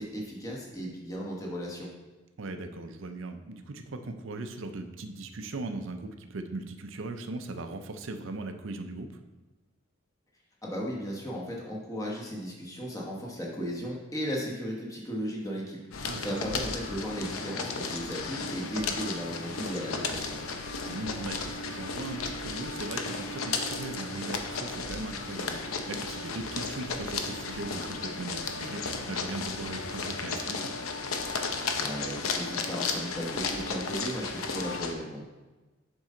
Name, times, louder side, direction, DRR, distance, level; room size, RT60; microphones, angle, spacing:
voice 1, 0.0-1.9 10.6-20.4 31.8-35.2, equal, 15° left, -3 dB, 1.2 m, -36 dB
voice 2, 2.4-9.2 16.0-16.5 20.9-30.7, right 2 dB, 65° right, 6 dB, 0.6 m, -39 dB
sound 1, 15.9-34.9, left 4 dB, 90° left, 0.7 m, -34 dB
7.3 x 5.4 x 3.8 m, 1.2 s
head